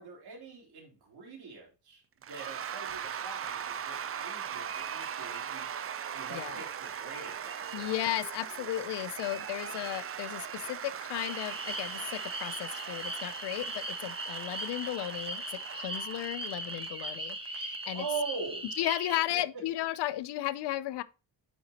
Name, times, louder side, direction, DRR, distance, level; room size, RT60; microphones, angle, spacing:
voice 1, 0.0-2.0 2.3-5.7 6.1-7.9 17.9-18.7 19.1-19.6, right 5 dB, 65° right, 3.5 m, -42 dB
Cheering / Applause / Crowd, 2.2-17.8, right 8 dB, 35° right, 0.5 m, -40 dB
voice 2, 7.7-18.0 18.8-21.0, left 14 dB, 70° left, 0.5 m, -35 dB
sound 1, 11.2-19.2, right 1 dB, 15° right, 1.2 m, -39 dB
8.3 x 5.9 x 2.8 m
cardioid pair, 110°, 42 cm